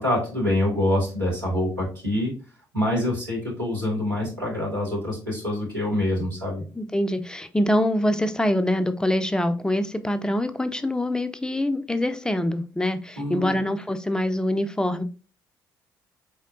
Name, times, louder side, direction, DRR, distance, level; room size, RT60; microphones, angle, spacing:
voice 1, 0.0-2.3 2.7-6.6 13.2-13.6, left 1 dB, 85° right, 1.8 m, -25 dB
voice 2, 6.8-15.0, left 1 dB, 5° left, 0.5 m, -24 dB
4.2 x 3.6 x 2.5 m
figure-of-eight pair, 45°, 10 cm